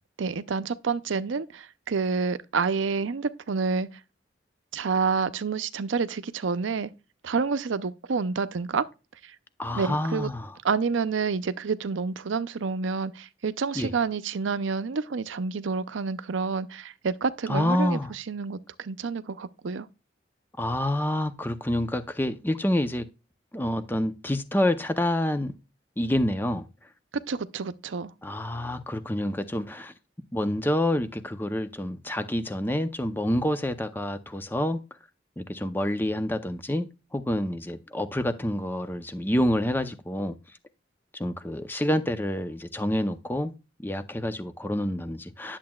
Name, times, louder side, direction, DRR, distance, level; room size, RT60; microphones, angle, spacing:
voice 1, 0.2-3.9 4.7-6.9 7.2-8.9 9.8-10.3 10.6-19.9 27.3-28.1, right 5 dB, 85° right, 0.5 m, -28 dB
voice 2, 9.6-10.5 13.7-13.9 17.5-18.1 20.6-23.1 23.5-25.5 26.0-26.7 28.2-29.9 30.3-34.8 35.4-36.9 37.1-40.4 41.1-43.5 43.8-45.6, left 1 dB, 10° left, 0.6 m, -27 dB
10.5 x 7.3 x 2.3 m
head